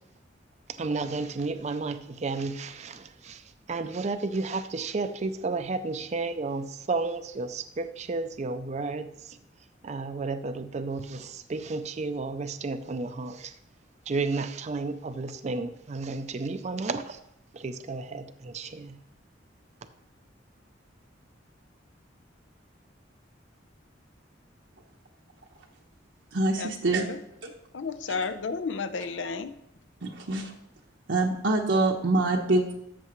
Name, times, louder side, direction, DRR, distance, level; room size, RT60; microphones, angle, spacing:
voice 1, 0.8-3.4 3.7-9.4 9.8-13.5 14.1-17.2 17.5-19.0, right 3 dB, 40° right, 10 dB, 0.4 m, -32 dB
voice 2, 26.3-27.0 30.0-30.5 31.1-32.7, right 2 dB, 80° right, 0 dB, 1.0 m, -25 dB
voice 3, 27.7-29.5, left 4 dB, 85° left, 11 dB, 0.6 m, -32 dB
13.5 x 6.8 x 3.1 m, 0.80 s
head